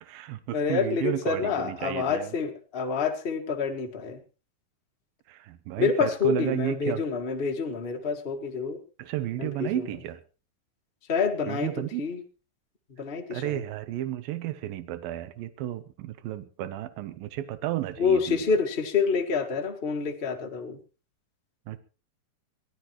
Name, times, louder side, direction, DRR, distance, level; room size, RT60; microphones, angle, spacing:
voice 1, 0.0-2.3 5.3-7.0 9.0-10.2 11.5-12.0 13.3-18.4 21.7-21.8, right 13 dB, 85° right, 12 dB, 2.7 m, -32 dB
voice 2, 0.5-4.2 5.8-8.8 9.4-9.9 11.1-11.7 12.0-12.2 13.0-13.6 18.0-20.8, left 5 dB, 30° left, 2 dB, 1.1 m, -27 dB
23.0 x 15.5 x 3.0 m, 0.34 s
omnidirectional pair, 4.0 m